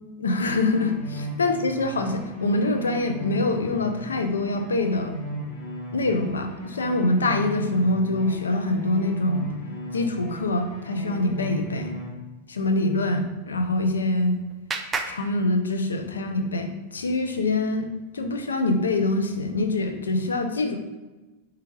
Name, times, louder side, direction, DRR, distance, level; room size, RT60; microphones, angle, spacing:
voice 1, 0.2-5.2 5.9-9.4 9.9-12.0 12.5-14.4 15.1-17.9 18.1-20.7, left 2 dB, 70° left, 5 dB, 0.5 m, -25 dB
sound 1, 0.7-12.1, right 1 dB, 45° left, 1.2 m, -36 dB
Clapping, 13.6-16.2, right 4 dB, 15° right, 0.4 m, -36 dB
4.4 x 3.6 x 3.1 m, 1.1 s
figure-of-eight pair, 90°, 0 cm